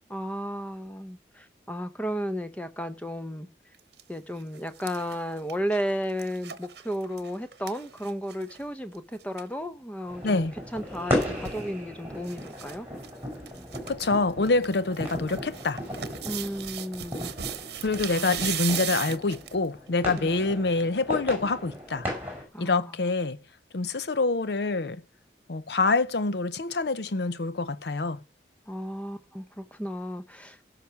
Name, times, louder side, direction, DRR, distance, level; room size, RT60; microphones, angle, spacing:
voice 1, 0.1-3.5 4.1-12.9 16.2-17.3 18.1-18.5 20.2-20.3 22.5-23.0 28.7-30.6, equal, 10° left, 0.8 m, -34 dB
sound 1, 3.7-4.0 4.4-8.6 8.9-9.0 9.2-9.5 10.7-11.7 12.2-12.8 13.0-13.1 13.5-14.1 14.5-19.7 20.2-20.3, right 10 dB, 70° right, 1.0 m, -37 dB
sound 2, 10.1-22.4, left 1 dB, 10° right, 5.4 m, -36 dB
voice 2, 10.2-10.5 13.9-15.8 17.8-22.1 22.6-23.4 23.7-25.0 25.5-28.2, left 3 dB, 75° left, 0.7 m, -26 dB
15.5 x 5.9 x 5.8 m
head